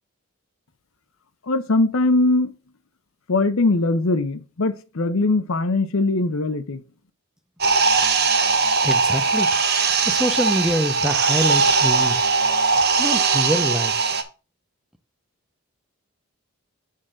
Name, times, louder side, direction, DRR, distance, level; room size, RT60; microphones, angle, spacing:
voice 1, 1.5-2.5 3.3-6.8, left 2 dB, 65° left, 0.7 m, -21 dB
sound 1, 7.6-14.2, right 4 dB, 45° right, 0.9 m, -20 dB
voice 2, 8.8-9.5 10.0-12.2 13.0-14.1, equal, ahead, 0.5 m, -25 dB
6.5 x 3.8 x 6.1 m
head